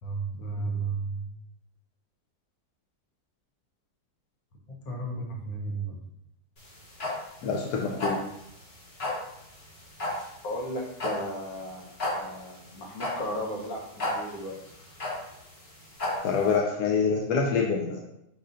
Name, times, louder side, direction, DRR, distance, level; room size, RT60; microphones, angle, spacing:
voice 1, 0.0-1.3 4.8-6.0 10.4-14.6, right 2 dB, 65° left, -1 dB, 1.5 m, -34 dB
sound 1, 6.6-16.5, left 1 dB, 40° left, 1.4 m, -34 dB
voice 2, 7.4-8.2 16.2-18.0, left 5 dB, 90° left, 0 dB, 1.2 m, -26 dB
5.0 x 4.2 x 2.5 m, 0.80 s
omnidirectional pair, 1.7 m